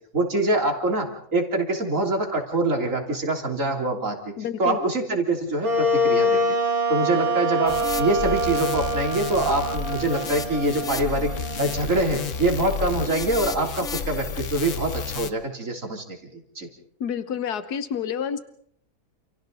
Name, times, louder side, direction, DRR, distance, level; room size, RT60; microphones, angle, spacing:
voice 1, 0.1-4.3 4.6-6.6 6.9-11.3 11.6-16.7, right 2 dB, 55° right, 2 dB, 3.7 m, -25 dB
voice 2, 4.4-4.8 17.0-18.4, left 8 dB, 90° left, 11 dB, 1.6 m, -29 dB
Wind instrument woodwind instrument, 5.6-13.0, equal, 30° right, 4.5 m, -26 dB
sound 1, 7.7-15.3, left 6 dB, 55° left, 1.4 m, -32 dB
29.5 x 29.0 x 4.0 m, 0.64 s
omnidirectional pair, 1.6 m